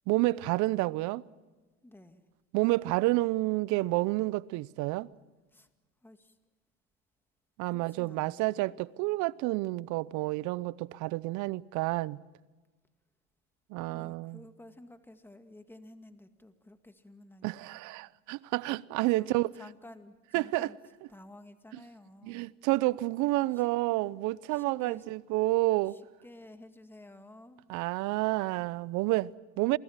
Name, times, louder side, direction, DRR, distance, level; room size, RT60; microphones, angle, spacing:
voice 1, 0.1-1.2 2.5-5.1 7.6-12.2 13.7-14.4 17.4-19.5 20.3-20.7 22.2-26.0 27.7-29.8, right 20 dB, 70° right, 0.8 m, -29 dB
voice 2, 1.8-2.2 5.5-5.7 6.0-6.4 7.6-8.7 13.8-17.7 19.2-19.3 19.6-20.8 21.1-22.5 23.5-23.7 24.5-25.1 25.8-27.6, left 1 dB, 5° left, 2.2 m, -52 dB
28.0 x 20.5 x 7.4 m
hypercardioid pair, 75°, 31 cm